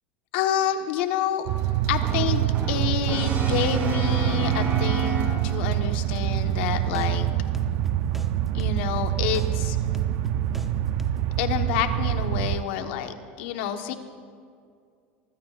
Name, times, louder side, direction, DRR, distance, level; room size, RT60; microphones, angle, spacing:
voice 1, 0.3-1.5 1.9-7.3 8.5-9.8 11.4-13.9, left 9 dB, 75° left, 6 dB, 1.3 m, -28 dB
sound 1, 1.5-12.6, right 13 dB, 60° right, 0.5 m, -25 dB
Brass instrument, 2.0-5.8, right 3 dB, 35° right, 3.1 m, -31 dB
sound 2, 6.3-7.1 7.5-8.3 8.6-10.7 11.0-11.4, right 1 dB, 5° right, 0.8 m, -41 dB
25.5 x 15.5 x 2.5 m, 2.2 s
supercardioid pair, 130°, 6 cm